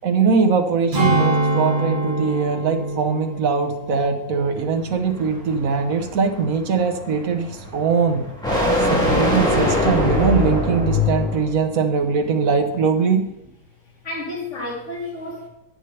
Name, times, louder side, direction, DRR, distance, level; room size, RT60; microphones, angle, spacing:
voice 1, 0.0-8.3 8.8-13.3, right 5 dB, 65° right, 6 dB, 1.4 m, -21 dB
Strum, 0.9-5.6 6.0-6.2, right 2 dB, 40° right, 4.3 m, -25 dB
voice 2, 2.2-3.0 4.4-5.1 5.6-6.0 7.4-7.7 14.0-15.5, left 2 dB, 50° left, -2 dB, 2.6 m, -35 dB
sound 1, 4.6-11.6, left 1 dB, 5° left, 2.4 m, -23 dB
11.0 x 8.2 x 3.3 m, 0.91 s
omnidirectional pair, 1.6 m